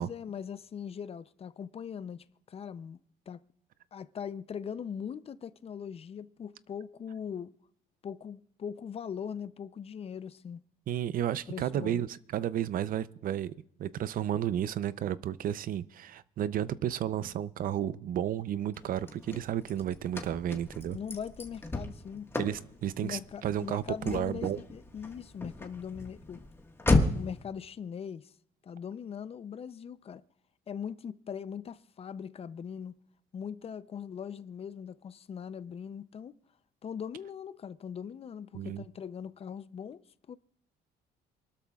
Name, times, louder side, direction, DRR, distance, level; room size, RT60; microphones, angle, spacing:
voice 1, 0.0-3.0 3.3-3.4 3.9-7.5 8.0-10.6 11.5-12.0 20.9-22.3 23.0-26.4 27.1-28.3 28.6-30.2 30.7-33.0 33.3-36.4 36.8-40.4, left 7 dB, 35° left, 0.5 m, -40 dB
voice 2, 10.9-13.5 13.8-21.0 22.4-24.6 38.5-38.8, right 10 dB, 55° right, 0.6 m, -32 dB
Car / Slam, 18.7-27.4, left 2 dB, 15° left, 1.5 m, -34 dB
28.0 x 12.5 x 2.4 m
cardioid pair, 110°, 17 cm